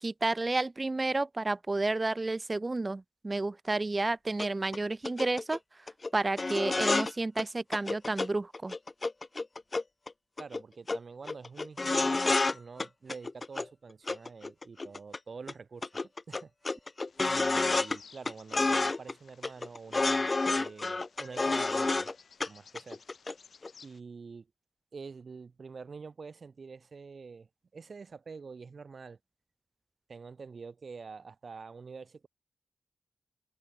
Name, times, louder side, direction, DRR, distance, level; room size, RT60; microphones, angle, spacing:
voice 1, 0.0-8.8, right 2 dB, 30° right, 0.6 m, -31 dB
sound 1, 4.4-4.5 4.7-4.8 5.0-5.6 5.9-6.1 6.4-7.1 7.4-7.5 7.7-8.3 8.5-10.1 10.4-10.6 10.9-11.0 11.3-12.5 12.8-13.7 14.1-15.2 15.5-15.6 15.8-18.0 18.3-19.1 19.4-22.1 22.4-22.5 22.8-23.3 23.6-23.7, left 3 dB, 35° left, 0.3 m, -29 dB
voice 2, 10.4-15.9 16.3-16.5 17.3-22.1 22.4-23.0 23.8-24.5 24.9-29.2 30.1-32.3, right 5 dB, 60° right, 1.6 m, -47 dB
Bird vocalization bird call bird song, 17.1-24.0, left 6 dB, 70° left, 6.6 m, -58 dB
wide cardioid pair, 90°, 0 cm